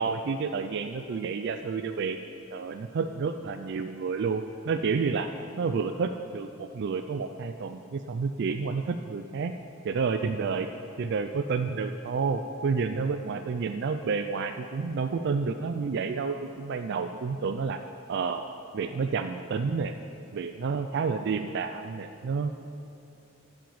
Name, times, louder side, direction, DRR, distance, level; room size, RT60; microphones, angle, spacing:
voice 1, 0.0-2.2 2.5-5.3 5.6-9.5 9.8-10.7 11.0-17.8 18.1-18.4 18.7-19.9 20.3-22.6, right 5 dB, 55° right, 8 dB, 0.3 m, -30 dB
8.5 x 6.3 x 7.0 m, 2.6 s
head